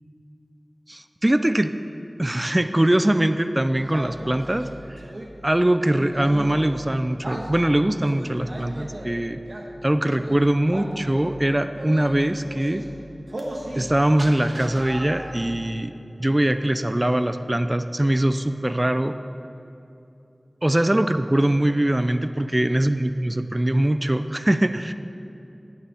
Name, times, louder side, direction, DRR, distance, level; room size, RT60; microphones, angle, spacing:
voice 1, 0.9-1.7 2.2-5.0 5.4-9.4 9.8-12.8 13.8-15.9 16.2-19.2 20.6-24.9, right 1 dB, 25° right, 10 dB, 0.4 m, -22 dB
sound 1, 3.7-5.3 5.9-6.8 7.2-7.5 8.0-9.1 9.5-9.7 10.1-10.4 10.7-11.3 11.7-12.1 12.4-12.9 13.3-13.9 14.1-15.5, right 1 dB, 60° right, 1.3 m, -36 dB
16.0 x 9.3 x 3.5 m, 2.8 s
wide cardioid pair, 55°, 0 cm